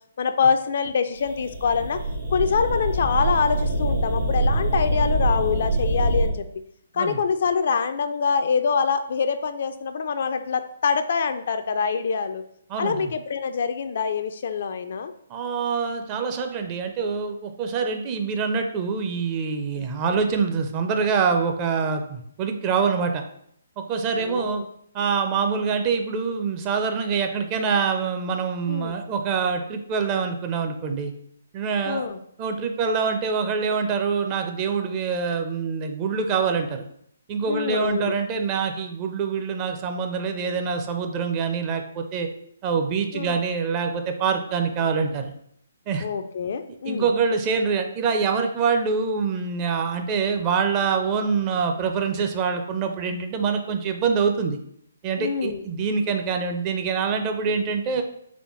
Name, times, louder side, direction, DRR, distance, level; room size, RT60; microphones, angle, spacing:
voice 1, 0.2-2.0 2.3-6.5 6.9-12.4 12.8-15.1 19.7-19.9 24.1-24.6 28.7-28.9 31.9-32.2 37.5-38.2 43.1-43.4 46.0-47.1 55.2-55.6, left 6 dB, 55° left, 9 dB, 0.3 m, -25 dB
sound 1, 1.2-6.3, right 1 dB, 75° right, 1.1 m, -24 dB
voice 2, 12.7-13.1 15.3-23.2 23.8-24.6 24.9-31.1 31.5-32.1 32.4-36.8 37.3-42.3 42.6-45.3 45.9-46.0 46.8-54.6 55.0-58.0, right 5 dB, 30° right, 5 dB, 0.5 m, -25 dB
4.1 x 3.3 x 3.0 m, 0.69 s
figure-of-eight pair, 135°, 0 cm